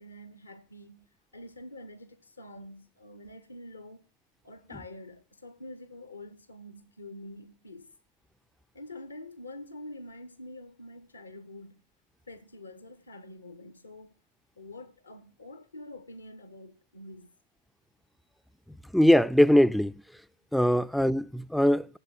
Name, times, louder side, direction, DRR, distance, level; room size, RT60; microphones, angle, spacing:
voice 1, 0.0-4.0 4.4-7.9 8.7-11.8 12.3-14.2 14.6-17.3, left 1 dB, 80° left, 0.8 m, -46 dB
voice 2, 18.9-20.0 20.5-22.0, equal, ahead, 0.4 m, -21 dB
7.9 x 6.7 x 7.4 m
figure-of-eight pair, 90°, 0 cm